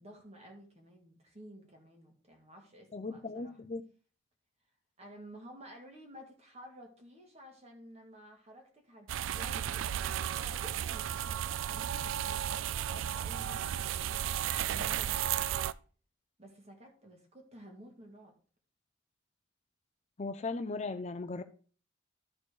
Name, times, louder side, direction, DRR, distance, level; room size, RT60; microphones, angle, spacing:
voice 1, 0.0-3.6 5.0-15.7 16.4-18.4, equal, 35° right, 2.0 m, -53 dB
voice 2, 2.9-3.8 20.2-21.4, left 3 dB, 35° left, 0.5 m, -37 dB
sound 1, 9.1-15.7, right 10 dB, 80° right, 0.3 m, -34 dB
12.5 x 4.3 x 4.8 m
head